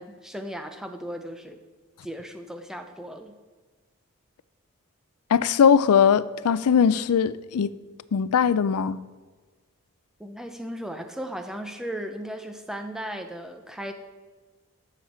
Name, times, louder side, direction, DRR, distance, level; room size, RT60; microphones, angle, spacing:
voice 1, 0.0-1.6 2.0-3.3 10.2-13.9, equal, ahead, 6 dB, 0.6 m, -36 dB
voice 2, 5.3-7.7 8.1-9.0, left 7 dB, 90° left, 17 dB, 0.4 m, -20 dB
12.0 x 7.1 x 4.3 m, 1.4 s
head